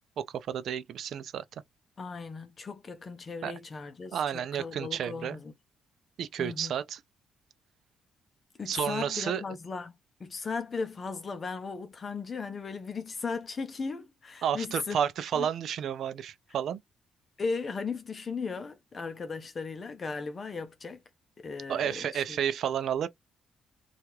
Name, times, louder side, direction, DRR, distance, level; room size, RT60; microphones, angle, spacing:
voice 1, 0.2-1.4 3.4-3.5 4.1-5.4 6.2-7.0 8.7-9.4 14.4-16.8 21.7-23.1, right 9 dB, 65° right, 0.4 m, -31 dB
voice 2, 2.0-5.5 6.4-6.7 8.6-15.0 15.3-15.5 17.4-21.0 21.4-22.4, left 4 dB, 35° left, 0.6 m, -37 dB
2.7 x 2.4 x 3.0 m
cardioid pair, 90°, 0 cm